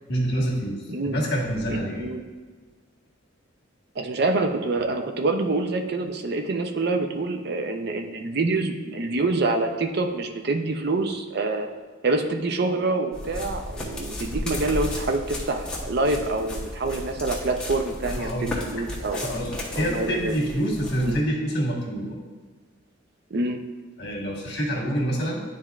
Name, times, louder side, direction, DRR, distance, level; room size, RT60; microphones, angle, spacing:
voice 1, 0.1-2.1 18.1-18.6 19.1-22.2 24.0-25.4, equal, 55° left, -2 dB, 1.5 m, -27 dB
voice 2, 4.0-11.7 12.0-19.2 19.8-20.3 21.0-21.2 23.3-23.6, right 2 dB, 55° right, 5 dB, 0.5 m, -26 dB
sound 1, 13.1-21.2, left 1 dB, 5° left, 1.0 m, -34 dB
10.5 x 4.3 x 2.4 m, 1.4 s
head